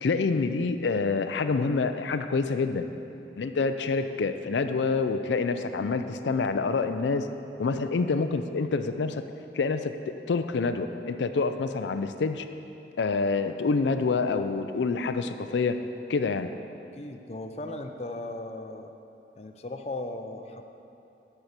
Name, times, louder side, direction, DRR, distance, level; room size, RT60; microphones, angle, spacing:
voice 1, 0.0-2.9 3.4-7.3 7.6-9.2 9.5-12.5 13.0-15.8 16.1-16.5, left 4 dB, 90° left, 9 dB, 0.4 m, -27 dB
voice 2, 16.9-18.9 19.4-20.6, left 2 dB, 35° left, 5 dB, 0.5 m, -37 dB
10.5 x 5.7 x 6.6 m, 2.9 s
head